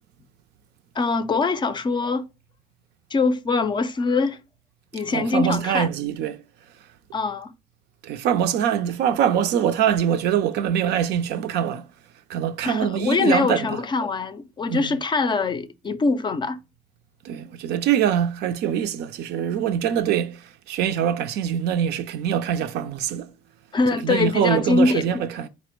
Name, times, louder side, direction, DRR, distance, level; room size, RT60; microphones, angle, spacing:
voice 1, 1.0-2.3 3.1-4.4 4.9-5.9 7.1-7.5 12.6-16.6 23.7-25.2, left 4 dB, 30° left, 0.4 m, -23 dB
voice 2, 5.1-6.4 8.0-11.8 12.3-13.7 14.7-14.9 17.2-23.3 24.0-25.5, right 9 dB, 80° right, 0.5 m, -23 dB
4.2 x 2.1 x 4.4 m
cardioid pair, 110°, 17 cm